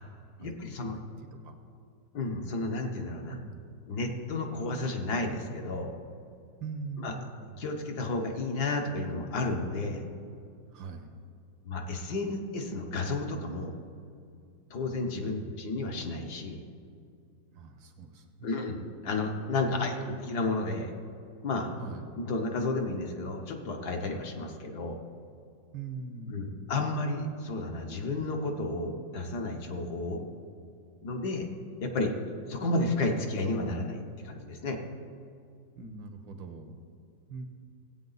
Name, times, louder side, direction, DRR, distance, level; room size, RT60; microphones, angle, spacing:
voice 1, 0.4-1.0 2.1-3.4 3.9-6.0 7.0-7.1 7.6-10.0 11.6-13.7 14.7-16.6 18.4-20.9 21.4-21.7 22.2-25.0 26.3-30.2 31.0-31.5 31.8-32.2 32.5-34.8, left 2 dB, 60° left, 3 dB, 1.5 m, -32 dB
voice 2, 3.3-3.6 6.6-7.6 10.7-11.1 15.3-15.6 17.5-18.8 19.7-20.2 21.8-22.1 25.7-26.7 35.8-36.8 37.3-37.4, right 4 dB, 75° right, 5 dB, 1.8 m, -42 dB
17.0 x 8.4 x 4.0 m, 2.4 s
omnidirectional pair, 2.1 m